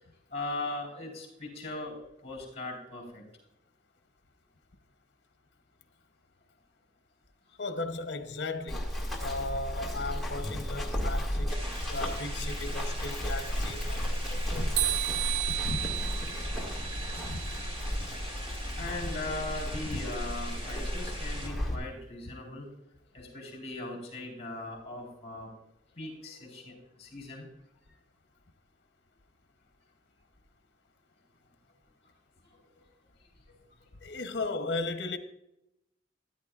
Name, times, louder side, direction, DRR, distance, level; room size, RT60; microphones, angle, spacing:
voice 1, 0.3-3.2 14.0-14.2 18.7-22.7 23.1-25.5 26.0-27.5, left 2 dB, 35° left, 4.0 m, -39 dB
voice 2, 7.6-8.9 9.2-11.5 11.9-14.8 15.5-15.9 17.2-17.4 18.8-18.9 19.9-20.0 34.0-35.2, left 2 dB, 80° left, 0.8 m, -36 dB
Run, 8.7-21.8, equal, ahead, 1.8 m, -34 dB
sound 1, 11.5-21.5, equal, 30° right, 2.4 m, -43 dB
sound 2, 14.8-17.9, right 15 dB, 75° right, 0.4 m, -33 dB
13.5 x 10.5 x 2.4 m
head